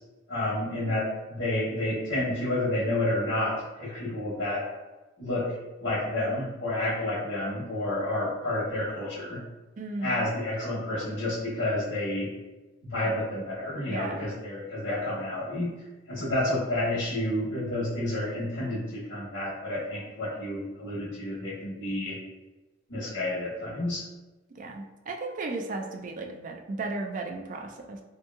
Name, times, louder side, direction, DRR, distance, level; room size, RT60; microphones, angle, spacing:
voice 1, 0.3-4.7 5.2-9.4 10.0-12.3 12.8-15.7 16.1-22.2 22.9-24.0, left 1 dB, 80° left, -9 dB, 0.9 m, -30 dB
voice 2, 9.8-10.2 13.9-14.2 24.6-28.0, right 3 dB, 45° right, 2 dB, 0.4 m, -35 dB
2.8 x 2.6 x 2.3 m, 1.1 s
head